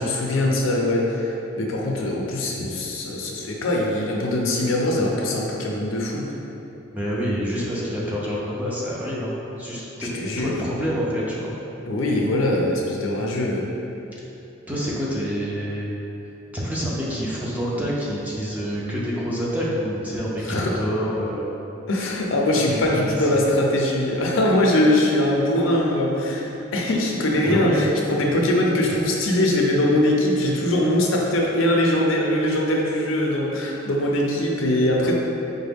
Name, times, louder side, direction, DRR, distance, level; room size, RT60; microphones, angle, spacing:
voice 1, 0.0-6.3 10.1-10.5 11.9-13.7 20.5-20.8 21.9-35.1, left 1 dB, 70° left, -1 dB, 0.5 m, -22 dB
voice 2, 6.9-10.1 10.4-11.5 14.7-15.9 16.5-21.5 22.8-23.4 27.4-27.8, equal, 10° right, -7 dB, 0.5 m, -27 dB
4.7 x 2.1 x 3.4 m, 3.0 s
head